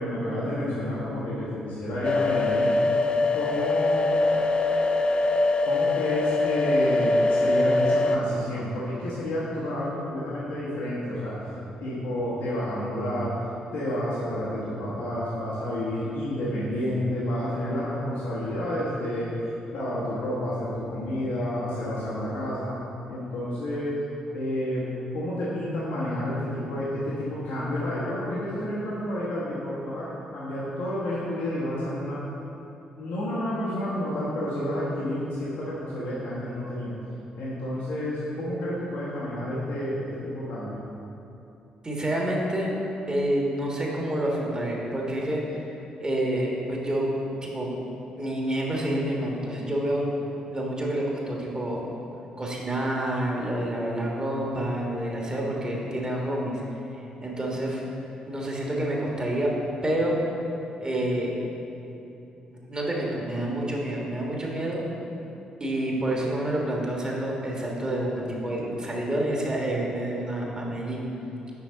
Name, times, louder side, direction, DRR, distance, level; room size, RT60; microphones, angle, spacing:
voice 1, 0.0-2.8 3.3-4.2 5.6-11.3 11.8-13.3 13.7-19.3 19.7-22.8 23.1-24.0 24.3-24.9 25.1-32.2 33.0-37.0 37.4-40.8, left 1 dB, 65° left, -9 dB, 1.2 m, -30 dB
sound 1, 2.0-8.2, left 2 dB, 30° left, 0.4 m, -23 dB
voice 2, 41.8-42.7 43.1-47.8 48.2-50.0 50.5-51.8 52.4-56.6 57.2-57.8 58.3-59.5 59.8-60.2 60.8-61.4 62.5-64.8 65.6-71.1, right 1 dB, 25° right, -2 dB, 1.6 m, -28 dB
6.8 x 5.3 x 4.0 m, 2.9 s
figure-of-eight pair, 40°, 3 cm